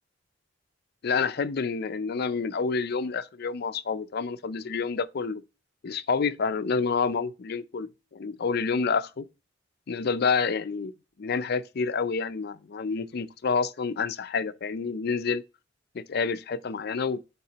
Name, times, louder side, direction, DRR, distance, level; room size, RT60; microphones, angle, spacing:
voice 1, 1.0-5.4 5.8-9.3 9.9-10.9 11.2-15.4 15.9-17.2, left 5 dB, 55° left, 0.5 m, -28 dB
8.6 x 4.1 x 4.0 m
head